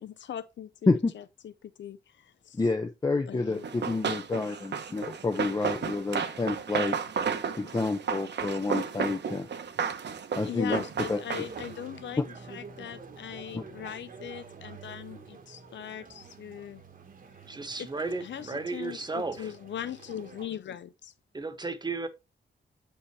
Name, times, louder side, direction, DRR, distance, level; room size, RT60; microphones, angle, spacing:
voice 1, 0.0-2.6 3.3-3.6 10.4-16.8 18.2-21.1, left 10 dB, 75° left, 0.5 m, -40 dB
voice 2, 2.5-7.0 7.6-9.5 10.4-10.8 11.1-11.2 13.5-13.7, left 3 dB, 20° left, 0.6 m, -29 dB
Run, 3.6-11.8, right 6 dB, 65° right, 1.1 m, -33 dB
sound 1, 11.1-20.5, right 5 dB, 50° right, 1.2 m, -48 dB
voice 3, 17.5-19.5 21.3-22.1, right 3 dB, 25° right, 1.1 m, -34 dB
8.3 x 5.4 x 3.2 m
wide cardioid pair, 140°, 19 cm